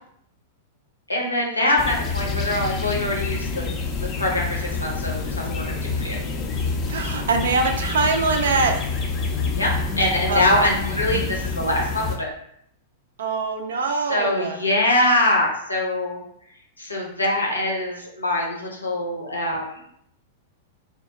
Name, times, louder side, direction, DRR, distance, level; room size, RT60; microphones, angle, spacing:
voice 1, 1.1-3.7 4.0-6.2 9.3-9.7 10.0-12.3 13.9-16.2 16.8-19.8, left 1 dB, 85° left, -1 dB, 0.6 m, -23 dB
sound 1, 1.8-12.2, left 4 dB, 35° left, 0.4 m, -27 dB
voice 2, 6.9-8.8 10.3-10.4 13.2-14.6, right 4 dB, 65° right, 4 dB, 0.4 m, -23 dB
2.3 x 2.0 x 2.9 m, 0.70 s
figure-of-eight pair, 95°, 0 cm